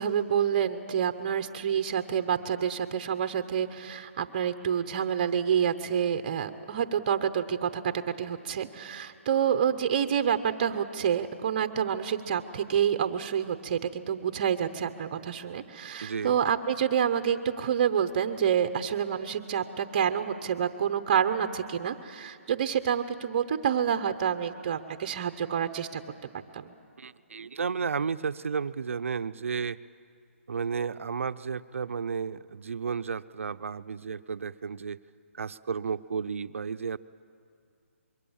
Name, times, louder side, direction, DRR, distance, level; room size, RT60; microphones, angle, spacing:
voice 1, 0.0-26.0 26.5-26.7, right 8 dB, 30° right, 8 dB, 0.8 m, -28 dB
voice 2, 16.0-16.4 27.0-29.8 30.5-35.0 35.3-37.0, right 5 dB, 65° right, 12 dB, 0.7 m, -32 dB
25.5 x 22.5 x 7.2 m, 2.4 s
hypercardioid pair, 165°, 8 cm